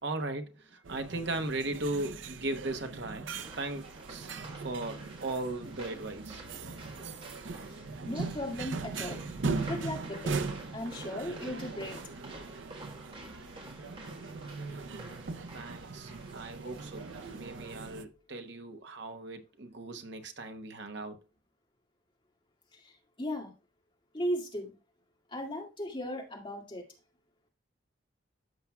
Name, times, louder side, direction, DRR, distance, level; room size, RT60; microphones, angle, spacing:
voice 1, 0.0-3.3 3.6-6.4 15.5-21.2, right 2 dB, 65° right, 1.1 m, -37 dB
sound 1, 0.8-18.0, right 4 dB, 80° right, 0.6 m, -39 dB
sound 2, 3.4-18.0, right 2 dB, 25° right, 1.4 m, -51 dB
voice 2, 7.7-9.2 9.6-10.4 10.7-12.0 22.7-22.9 23.2-23.5 24.1-24.7 25.3-26.9, equal, 25° left, 2.1 m, -37 dB
14.0 x 5.7 x 2.3 m
head